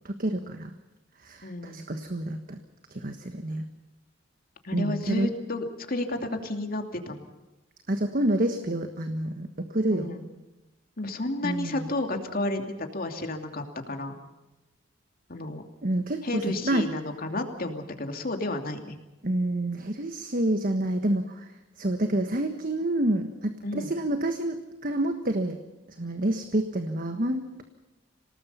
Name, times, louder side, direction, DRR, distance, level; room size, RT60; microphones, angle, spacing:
voice 1, 0.0-0.7 1.2-2.6 2.9-3.7 4.7-5.3 7.9-10.2 11.4-11.9 15.8-16.9 19.2-21.5 21.8-25.6 26.0-27.6, right 1 dB, 45° right, 7 dB, 1.4 m, -28 dB
voice 2, 1.4-1.9 4.6-7.3 9.9-10.3 11.0-14.2 15.3-15.6 16.2-19.0 23.6-23.9, left 2 dB, 50° left, 5 dB, 2.7 m, -32 dB
26.5 x 19.0 x 5.6 m, 1.0 s
head